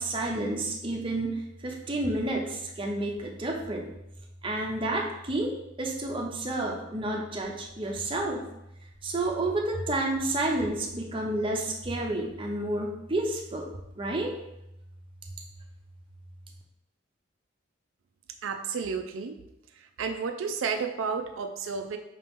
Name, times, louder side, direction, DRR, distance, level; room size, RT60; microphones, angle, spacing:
voice 1, 0.0-3.9 4.4-5.5 5.8-8.4 9.0-13.7 14.0-14.3, right 2 dB, 25° right, 0 dB, 0.6 m, -30 dB
voice 2, 18.4-19.3 19.8-22.0, right 5 dB, 85° right, 5 dB, 0.4 m, -32 dB
5.0 x 2.9 x 3.5 m, 0.86 s
head